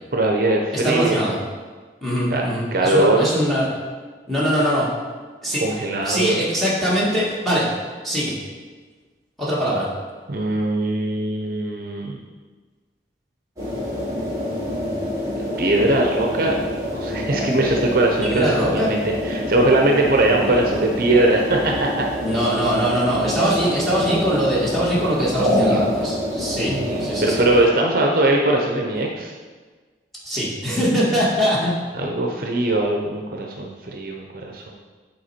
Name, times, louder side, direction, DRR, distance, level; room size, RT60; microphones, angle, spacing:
voice 1, 0.1-1.2 2.3-2.4 2.7-3.3 5.6-6.4 10.3-12.2 15.4-16.6 16.9-22.1 23.1-23.5 25.0-25.2 25.5-25.9 26.6-29.3 31.9-34.7, right 2 dB, 50° right, 1 dB, 0.6 m, -21 dB
voice 2, 0.8-1.4 2.0-3.7 4.3-4.9 5.4-5.6 6.0-7.7 8.0-8.3 9.4-9.9 18.2-18.9 22.2-26.7 27.0-27.4 30.2-31.7, equal, ahead, -8 dB, 1.7 m, -22 dB
sound 1, 13.6-27.6, left 1 dB, 20° right, 1.8 m, -26 dB
7.8 x 4.3 x 4.3 m, 1.4 s
head